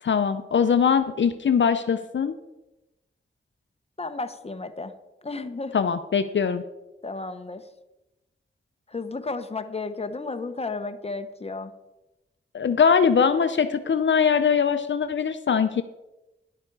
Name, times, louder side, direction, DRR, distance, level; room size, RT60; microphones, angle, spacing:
voice 1, 0.0-2.3 5.7-6.6 12.5-15.8, left 6 dB, 70° left, 10 dB, 0.6 m, -21 dB
voice 2, 4.0-4.9 5.2-5.7 7.0-7.6 8.9-11.7, left 3 dB, 30° left, 9 dB, 0.9 m, -33 dB
11.0 x 8.2 x 4.7 m, 0.98 s
wide cardioid pair, 70°, 20 cm